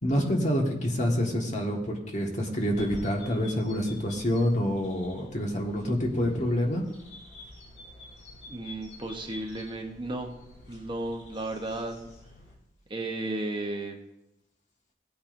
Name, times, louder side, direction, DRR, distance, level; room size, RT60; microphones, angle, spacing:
voice 1, 0.0-6.8, equal, 40° left, 0 dB, 1.6 m, -27 dB
sound 1, 2.6-12.6, left 2 dB, 80° left, 3.6 m, -48 dB
voice 2, 8.5-10.3 10.7-12.1 12.9-14.0, right 2 dB, 25° right, 2 dB, 1.0 m, -34 dB
17.0 x 8.6 x 2.6 m, 0.89 s
head